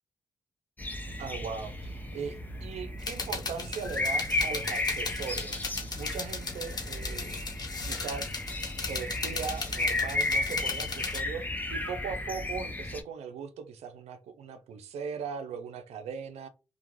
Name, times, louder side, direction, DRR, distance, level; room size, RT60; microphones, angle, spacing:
sound 1, 0.8-13.0, left 2 dB, 15° left, 0.7 m, -34 dB
voice 1, 1.2-5.6 6.0-7.4 7.8-8.3 8.8-11.4 11.7-16.5, right 6 dB, 80° right, 0.5 m, -39 dB
sound 2, 3.0-11.2, left 4 dB, 40° left, 1.0 m, -37 dB
2.3 x 2.2 x 3.1 m
cardioid pair, 60°, 11 cm